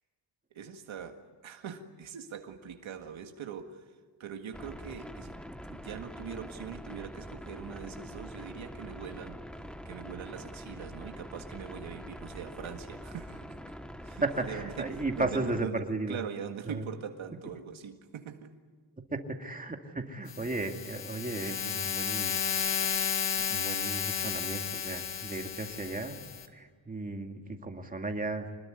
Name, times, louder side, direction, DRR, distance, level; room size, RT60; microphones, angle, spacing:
voice 1, 0.5-3.9 4.2-5.4 5.7-9.4 9.9-13.6 14.0-18.5 20.4-20.5, right 8 dB, 85° right, 4 dB, 1.9 m, -42 dB
sound 1, 4.5-15.6, equal, ahead, 1.0 m, -44 dB
voice 2, 14.2-16.2 16.7-16.9 17.3-17.4 19.1-22.4 23.5-26.1 26.5-28.5, right 2 dB, 20° right, 4 dB, 2.2 m, -35 dB
sound 2, 20.3-26.5, left 7 dB, 65° left, 1.8 m, -33 dB
26.0 x 20.5 x 9.5 m, 1.5 s
wide cardioid pair, 145°, 46 cm